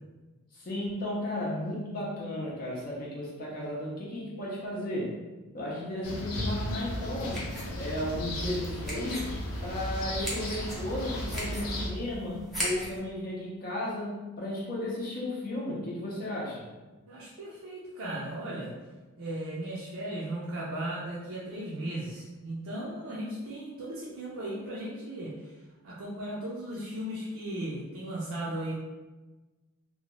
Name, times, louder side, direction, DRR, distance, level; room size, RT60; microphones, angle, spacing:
voice 1, 0.5-5.2 5.5-7.5 7.8-9.4 9.6-16.7, left 1 dB, 40° left, -5 dB, 0.6 m, -34 dB
sound 1, 6.0-11.9, left 1 dB, 85° left, 0.7 m, -35 dB
sound 2, 6.7-13.0, equal, ahead, 0.7 m, -40 dB
voice 2, 17.1-18.7 19.2-25.5 25.8-28.7, right 1 dB, 65° right, -7 dB, 0.5 m, -36 dB
2.9 x 2.2 x 2.9 m, 1.2 s
head